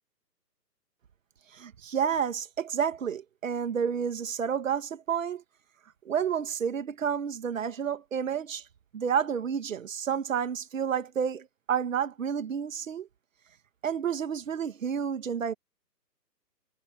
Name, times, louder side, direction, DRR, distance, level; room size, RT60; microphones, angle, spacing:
voice 1, 1.5-5.4 6.0-8.6 8.9-13.1 13.8-15.5, right 7 dB, 50° right, 2.6 m, -30 dB
figure-of-eight pair, 145°, 50 cm